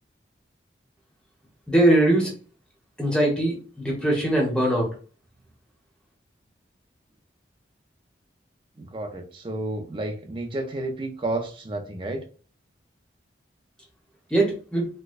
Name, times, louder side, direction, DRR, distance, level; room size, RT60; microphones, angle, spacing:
voice 1, 1.7-2.3 3.0-4.9 14.3-14.9, right 1 dB, 5° left, -2 dB, 0.9 m, -21 dB
voice 2, 8.8-12.2, right 2 dB, 25° right, 4 dB, 0.5 m, -31 dB
4.4 x 2.1 x 2.4 m, 0.38 s
head